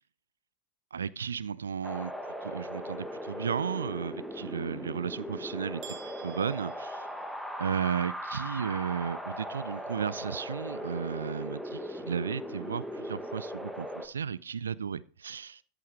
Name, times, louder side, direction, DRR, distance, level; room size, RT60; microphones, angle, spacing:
voice 1, 0.9-2.1 2.4-6.0 6.2-7.1 7.6-15.6, right 7 dB, 70° right, 0.5 m, -34 dB
Wind, 1.8-14.1, equal, ahead, 1.2 m, -39 dB
sound 1, 5.8-7.8, right 8 dB, 35° right, 1.3 m, -50 dB
13.5 x 8.5 x 3.1 m
figure-of-eight pair, 90°, 0 cm